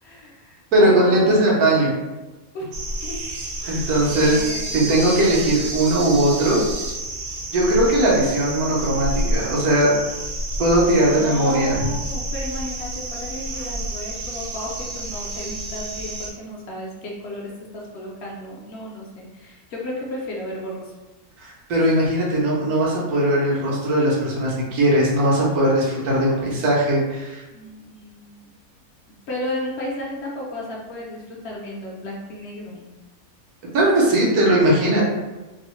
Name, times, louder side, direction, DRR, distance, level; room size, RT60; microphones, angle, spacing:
voice 1, 0.0-1.6 2.5-3.2 3.6-4.9 11.0-20.9 27.5-28.5 29.3-32.9, left 1 dB, 65° left, -2 dB, 0.7 m, -34 dB
voice 2, 0.7-1.9 3.7-4.4 4.7-6.6 7.5-9.9 10.6-11.8 21.4-27.4 33.7-35.0, right 1 dB, 90° right, -4 dB, 1.2 m, -19 dB
sound 1, 2.7-16.3, right 1 dB, 65° right, 0.7 m, -30 dB
3.0 x 2.0 x 2.9 m, 1.1 s
omnidirectional pair, 1.5 m